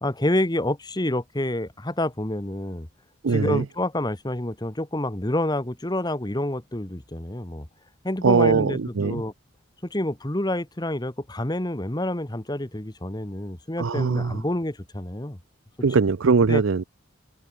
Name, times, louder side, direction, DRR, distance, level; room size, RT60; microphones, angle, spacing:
voice 1, 0.0-2.9 3.3-7.7 8.0-9.3 9.8-15.4 16.5-16.6, left 1 dB, 20° left, 1.3 m, -28 dB
voice 2, 3.2-3.6 8.2-9.2 13.8-14.4 15.8-16.8, right 4 dB, 65° right, 0.5 m, -21 dB
head